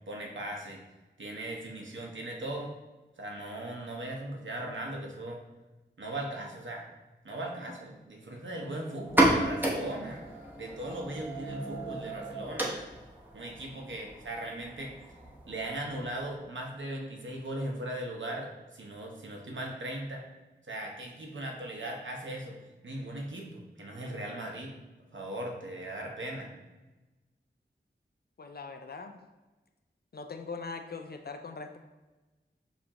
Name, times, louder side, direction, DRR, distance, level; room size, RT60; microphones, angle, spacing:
voice 1, 0.1-0.8 1.2-2.8 3.2-5.4 6.0-6.9 7.2-10.2 10.6-12.8 13.3-14.9 15.5-20.2 20.7-22.6 22.8-24.7 25.1-26.5, right 1 dB, 80° right, 0 dB, 0.8 m, -38 dB
sound 1, 9.0-16.4, right 1 dB, 10° right, 0.8 m, -32 dB
voice 2, 28.4-29.2 30.1-31.8, left 4 dB, 55° left, 5 dB, 0.4 m, -41 dB
6.8 x 2.5 x 2.9 m, 1.1 s
wide cardioid pair, 65°, 19 cm